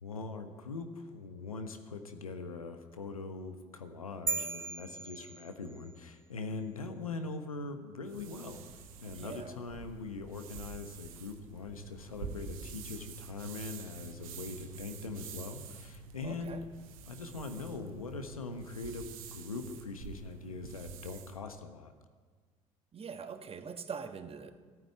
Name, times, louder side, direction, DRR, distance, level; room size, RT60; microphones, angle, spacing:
voice 1, 0.0-8.6 9.0-16.6 17.1-21.9, left 3 dB, 90° left, 7 dB, 1.1 m, -42 dB
sound 1, 4.3-6.0, right 4 dB, 15° right, 0.4 m, -37 dB
sound 2, 8.1-21.4, right 5 dB, 75° right, 1.3 m, -47 dB
voice 2, 9.1-9.6 16.2-16.6 22.9-24.5, right 6 dB, 35° right, 9 dB, 1.4 m, -43 dB
14.5 x 9.4 x 9.5 m, 1.6 s
figure-of-eight pair, 60°, 18 cm